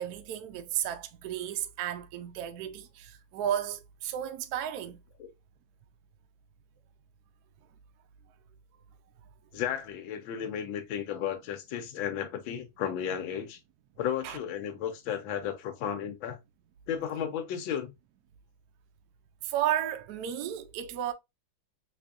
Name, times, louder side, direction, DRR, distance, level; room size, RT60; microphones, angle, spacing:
voice 1, 0.0-5.0 14.2-14.4 19.4-21.1, right 11 dB, 75° right, 0.9 m, -33 dB
voice 2, 9.5-13.6 14.0-16.4 16.9-17.9, left 9 dB, 85° left, 1.5 m, -34 dB
3.5 x 3.4 x 2.4 m
omnidirectional pair, 2.1 m